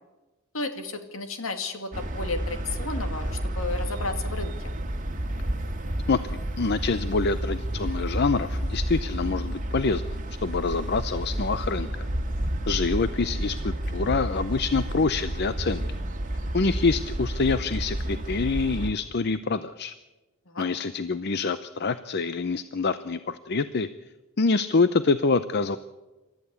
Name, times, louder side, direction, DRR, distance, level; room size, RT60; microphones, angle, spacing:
voice 1, 0.5-4.8 20.5-20.7, left 3 dB, 75° left, 7 dB, 2.3 m, -33 dB
sound 1, 1.9-18.9, right 1 dB, 40° right, 1.8 m, -30 dB
voice 2, 6.1-10.0 10.4-12.1 12.7-15.8 16.5-19.9 20.6-23.9 24.4-25.8, left 4 dB, 50° left, 13 dB, 0.6 m, -26 dB
28.0 x 13.5 x 8.2 m, 1.2 s
head